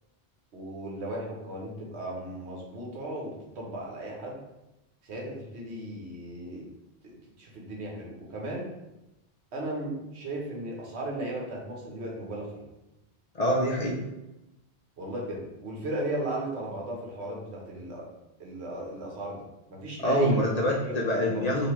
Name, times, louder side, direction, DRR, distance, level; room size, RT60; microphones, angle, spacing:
voice 1, 0.5-4.4 5.0-6.7 7.0-8.7 9.5-12.6 15.0-18.0 18.4-20.5 20.8-21.6, right 1 dB, 85° right, -2 dB, 1.2 m, -36 dB
voice 2, 13.3-14.0 20.0-21.7, equal, 50° left, -3 dB, 0.5 m, -25 dB
3.4 x 2.7 x 2.9 m, 0.94 s
omnidirectional pair, 1.1 m